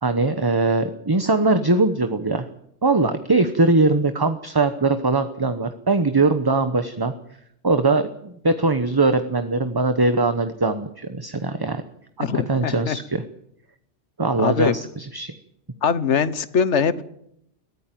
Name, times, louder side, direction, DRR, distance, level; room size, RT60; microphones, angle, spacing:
voice 1, 0.0-2.5 2.8-7.1 7.6-11.8 12.2-13.2 14.2-15.3, right 3 dB, 20° right, 9 dB, 0.9 m, -21 dB
voice 2, 12.2-13.0 14.4-14.8 15.8-17.0, left 6 dB, 80° left, 15 dB, 1.4 m, -22 dB
22.0 x 15.0 x 9.1 m, 0.75 s
omnidirectional pair, 1.2 m